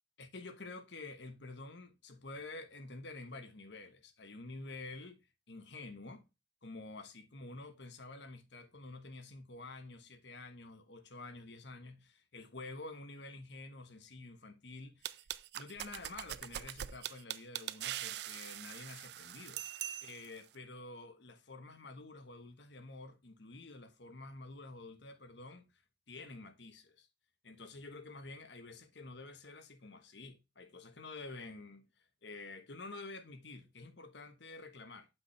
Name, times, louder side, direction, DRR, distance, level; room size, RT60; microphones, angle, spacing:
voice 1, 0.2-5.2 5.5-6.2 6.6-15.2 15.5-19.6 20.0-25.7 26.1-27.1 27.4-35.1, left 3 dB, 70° left, 1.2 m, -49 dB
sound 1, 15.0-20.4, right 12 dB, 60° right, 0.4 m, -42 dB
8.5 x 5.2 x 3.2 m
head